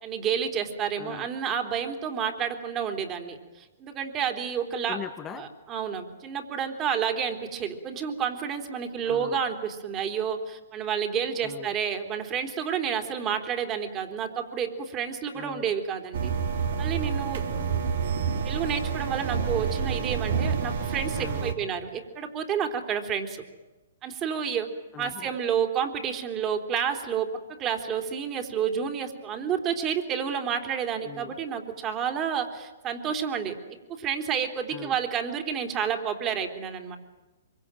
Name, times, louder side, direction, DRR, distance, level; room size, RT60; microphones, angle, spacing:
voice 1, 0.0-5.0 5.3-16.3 16.8-17.4 18.4-23.4 24.0-24.7 25.0-33.5 33.9-37.0, right 7 dB, 25° right, 5 dB, 3.6 m, -30 dB
voice 2, 1.0-1.3 4.9-5.5 9.0-9.4 11.4-11.7 15.3-15.7 17.5-17.8 21.1-21.5 24.9-25.3 31.0-31.3 34.7-34.9, left 9 dB, 20° left, 6 dB, 1.6 m, -41 dB
sound 1, 16.1-21.5, right 6 dB, 65° right, 3.0 m, -28 dB
25.0 x 24.0 x 9.1 m, 1.1 s
hypercardioid pair, 125°, 0 cm